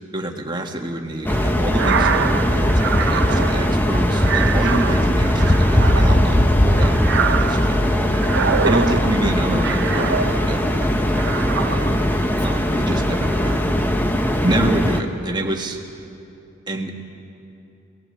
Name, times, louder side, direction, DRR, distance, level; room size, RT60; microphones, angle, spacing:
voice 1, 0.1-8.1 8.4-11.9 12.4-13.7 14.4-15.8 16.7-16.9, right 1 dB, 20° right, 2 dB, 1.4 m, -27 dB
sound 1, 1.2-15.0, equal, 10° left, 0.8 m, -19 dB
sound 2, 1.7-10.7 11.1-12.2, right 6 dB, 55° right, 0.6 m, -25 dB
20.5 x 17.5 x 7.7 m, 2.8 s
head